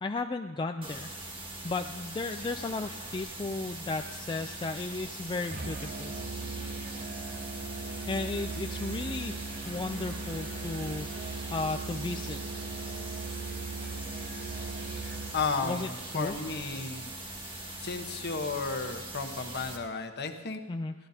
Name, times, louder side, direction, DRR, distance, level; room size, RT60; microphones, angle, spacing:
voice 1, 0.0-1.1 1.6-6.1 8.1-11.1 11.5-12.4 15.6-16.4 20.7-20.9, left 3 dB, 20° left, 6 dB, 0.4 m, -34 dB
sound 1, 0.8-19.8, right 2 dB, 25° right, 1.9 m, -42 dB
sound 2, 2.3-16.5, right 1 dB, 75° right, 2.6 m, -55 dB
Musical instrument, 5.5-15.4, right 3 dB, 45° right, 0.9 m, -39 dB
voice 2, 15.3-17.1 17.8-20.6, left 4 dB, 55° left, 6 dB, 1.1 m, -33 dB
22.5 x 15.5 x 2.8 m, 1.2 s
head